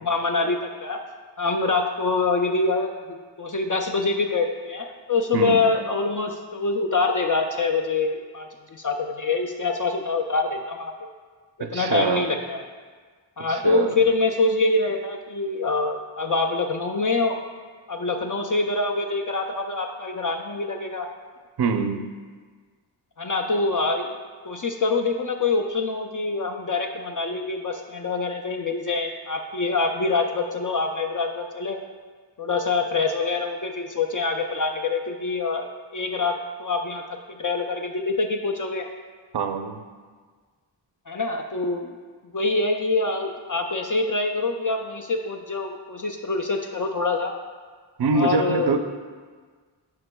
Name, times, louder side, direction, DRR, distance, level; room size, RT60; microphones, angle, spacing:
voice 1, 0.0-1.0 1.4-10.9 11.7-12.6 13.4-17.4 17.9-21.1 23.2-24.1 24.5-31.8 32.4-37.0 37.4-38.9 41.1-41.9 42.3-47.3 48.1-48.7, left 3 dB, 45° left, 2 dB, 0.4 m, -25 dB
voice 2, 5.3-5.7 11.6-12.3 13.5-14.0 21.6-22.2 39.3-39.8 48.0-48.8, right 5 dB, 60° right, 8 dB, 0.5 m, -24 dB
11.0 x 4.5 x 2.2 m, 1.5 s
wide cardioid pair, 80°, 47 cm